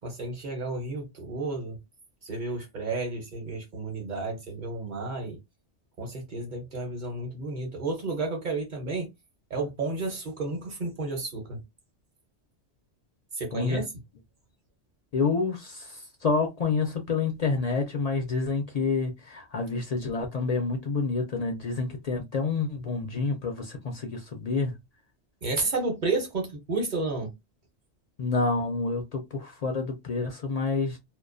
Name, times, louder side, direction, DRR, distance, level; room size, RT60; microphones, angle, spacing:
voice 1, 0.0-1.8 2.2-5.4 6.0-9.1 9.5-11.6 13.3-13.8 25.4-27.3, right 3 dB, 50° right, 0.8 m, -31 dB
voice 2, 13.5-13.8 15.1-24.7 28.2-31.0, left 4 dB, 55° left, 0.4 m, -28 dB
2.3 x 2.2 x 2.4 m
omnidirectional pair, 1.2 m